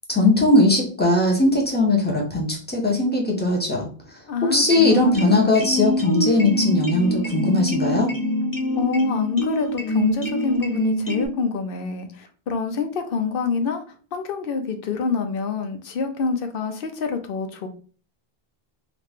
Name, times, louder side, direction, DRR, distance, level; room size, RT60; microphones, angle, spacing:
voice 1, 0.1-3.9 4.5-8.1, left 2 dB, 10° left, -2 dB, 0.9 m, -19 dB
voice 2, 4.3-5.4 8.8-13.8 14.1-17.7, left 5 dB, 65° left, 7 dB, 0.8 m, -26 dB
sound 1, 4.6-11.3, equal, 25° left, 0.5 m, -25 dB
3.0 x 2.4 x 3.5 m, 0.40 s
omnidirectional pair, 1.0 m